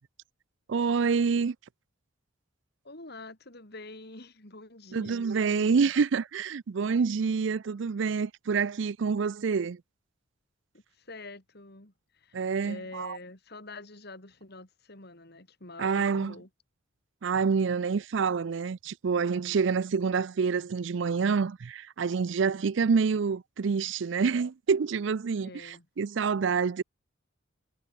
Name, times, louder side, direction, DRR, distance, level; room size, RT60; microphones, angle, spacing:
voice 1, 0.7-1.6 4.9-9.8 12.3-13.2 15.8-16.3 17.2-26.8, right 5 dB, 60° right, 0.4 m, -27 dB
voice 2, 2.8-5.9 7.0-7.1 10.9-16.5 25.4-25.9, left 2 dB, 55° left, 4.0 m, -46 dB
head